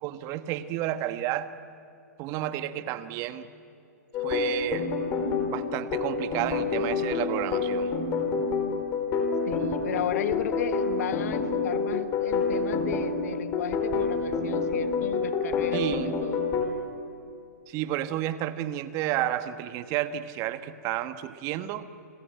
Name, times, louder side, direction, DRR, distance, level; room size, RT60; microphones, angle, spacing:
voice 1, 0.0-1.5 2.2-3.5 4.2-4.9 5.4-7.9 15.7-16.1 17.7-21.9, right 13 dB, 35° right, 12 dB, 1.3 m, -31 dB
sound 1, 4.1-16.7, left 4 dB, 30° left, 4.2 m, -28 dB
voice 2, 9.5-16.5, left 10 dB, 60° left, 11 dB, 1.7 m, -34 dB
29.5 x 22.0 x 9.2 m, 2.6 s
hypercardioid pair, 130°, 9 cm